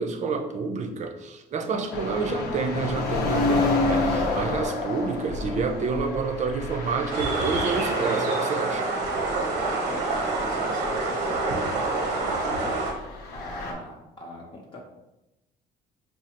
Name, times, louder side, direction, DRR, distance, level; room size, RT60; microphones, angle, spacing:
voice 1, 0.0-8.9, right 4 dB, 45° right, 6 dB, 0.5 m, -29 dB
sound 1, 1.9-9.0 9.3-9.4 10.0-10.5 10.9-11.0 12.9-13.7, left 3 dB, 80° left, 0.7 m, -29 dB
sound 2, 7.1-12.9, right 3 dB, 90° right, 0.8 m, -27 dB
voice 2, 9.5-12.7 13.3-14.8, left 1 dB, 30° left, -1 dB, 0.6 m, -41 dB
5.0 x 2.4 x 2.9 m, 0.97 s
cardioid pair, 110°, 17 cm